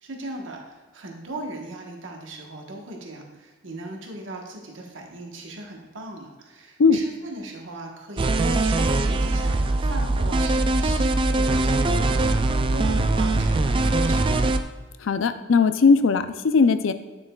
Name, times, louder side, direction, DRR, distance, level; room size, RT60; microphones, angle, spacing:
voice 1, 0.0-14.4, right 2 dB, 70° right, 1 dB, 1.2 m, -38 dB
sound 1, 8.2-14.6, right 2 dB, 25° right, 0.3 m, -22 dB
voice 2, 15.0-16.9, left 5 dB, 80° left, 11 dB, 0.5 m, -18 dB
8.9 x 7.1 x 2.3 m, 1.3 s
head